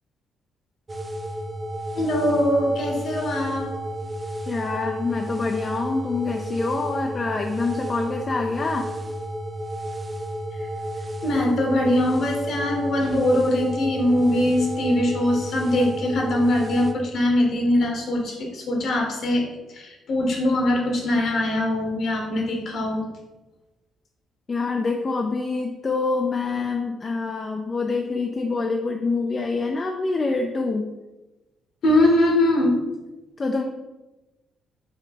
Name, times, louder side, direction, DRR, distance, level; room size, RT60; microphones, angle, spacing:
sound 1, 0.9-16.9, right 1 dB, 25° right, 0.4 m, -32 dB
voice 1, 1.9-3.7 10.6-10.7 11.2-23.1 31.8-32.7, left 1 dB, 60° left, 0 dB, 1.1 m, -22 dB
voice 2, 4.5-8.9 24.5-30.9 33.4-33.6, left 3 dB, 35° left, 3 dB, 0.4 m, -26 dB
5.2 x 2.2 x 4.1 m, 1.1 s
cardioid pair, 90°, 0 cm